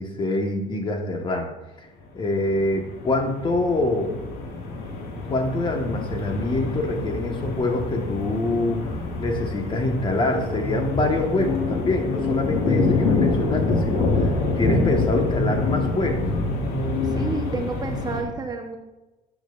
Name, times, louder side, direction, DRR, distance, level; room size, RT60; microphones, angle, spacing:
voice 1, 0.0-1.5 2.1-4.1 5.3-8.9 9.2-16.3, left 2 dB, 30° left, 3 dB, 1.5 m, -25 dB
sound 1, 2.3-18.2, left 3 dB, 70° left, 2.4 m, -26 dB
voice 2, 17.0-18.8, right 3 dB, 25° right, 3 dB, 1.1 m, -30 dB
12.5 x 8.9 x 2.6 m, 1.1 s
cardioid pair, 135°, 17 cm